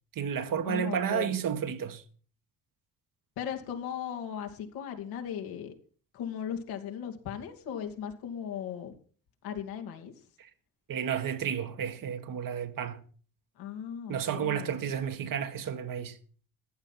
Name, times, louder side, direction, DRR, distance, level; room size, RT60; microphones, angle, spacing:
voice 1, 0.1-2.0 10.4-10.5 10.9-13.0 14.1-16.2, right 8 dB, 60° right, 2.0 m, -32 dB
voice 2, 0.6-1.4 3.4-5.7 6.1-8.9 9.4-10.1 13.6-14.8, left 8 dB, 80° left, 2.9 m, -37 dB
15.5 x 10.5 x 6.0 m
hypercardioid pair, 55°, 37 cm